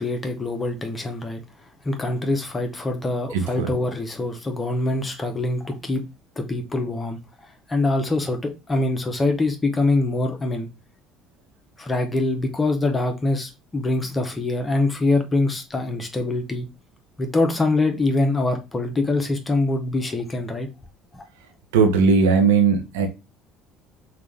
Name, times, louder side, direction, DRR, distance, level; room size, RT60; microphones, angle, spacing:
voice 1, 0.0-1.4 1.8-6.0 6.4-7.2 7.7-10.7 11.8-16.7 17.2-20.7 21.1-21.2, left 2 dB, 25° left, 0.8 m, -24 dB
voice 2, 3.3-3.7 21.7-23.1, right 5 dB, 80° right, 0.7 m, -18 dB
3.5 x 2.4 x 3.2 m
hypercardioid pair, 60°, 0 cm